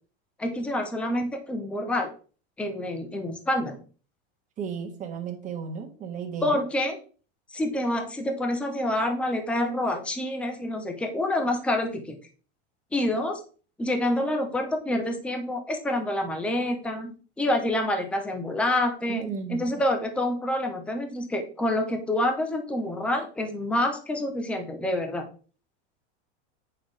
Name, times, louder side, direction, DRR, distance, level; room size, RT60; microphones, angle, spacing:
voice 1, 0.4-2.1 2.6-3.8 6.4-7.0 7.5-12.1 12.9-13.4 13.8-25.3, left 1 dB, 5° left, 5 dB, 0.7 m, -27 dB
voice 2, 4.6-6.6 19.1-19.8, right 6 dB, 25° right, 1 dB, 1.6 m, -34 dB
8.5 x 5.7 x 3.3 m, 0.39 s
supercardioid pair, 165°, 33 cm